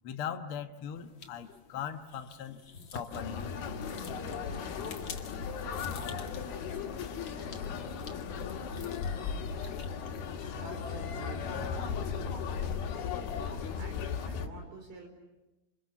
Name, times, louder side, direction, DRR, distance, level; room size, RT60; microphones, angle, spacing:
voice 1, 0.0-2.6 2.9-4.0 4.3-4.4 5.1-5.2 5.8-6.0 6.6-6.7 7.3-7.4, left 8 dB, 65° left, 7 dB, 1.3 m, -40 dB
sound 1, 1.0-10.7, left 4 dB, 40° left, 2.1 m, -50 dB
sound 2, 3.1-14.5, left 6 dB, 85° left, 3.8 m, -36 dB
voice 2, 10.5-12.0 12.3-12.4 13.4-15.1, right 2 dB, 85° right, 4 dB, 6.5 m, -48 dB
28.5 x 28.0 x 7.1 m, 1.0 s
omnidirectional pair, 4.2 m